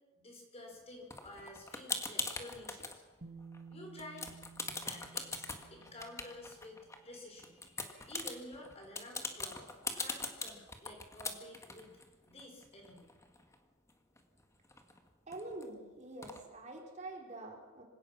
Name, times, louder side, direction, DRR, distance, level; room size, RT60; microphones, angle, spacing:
voice 1, 0.2-3.0 3.7-4.3 4.8-9.7 9.9-12.0 12.2-13.1, left 1 dB, 30° left, 1 dB, 5.0 m, -51 dB
sound 1, 1.1-3.0 3.4-3.7 4.0-7.0 7.4-13.6 13.9-14.0 14.2-15.6 16.2-16.4, left 3 dB, 15° left, 1.7 m, -41 dB
Bass guitar, 3.2-7.1 8.3-8.4, right 5 dB, 60° right, 2.0 m, -55 dB
voice 2, 15.3-17.8, right 2 dB, 35° right, 0 dB, 3.6 m, -46 dB
26.0 x 17.0 x 6.0 m, 1.2 s
head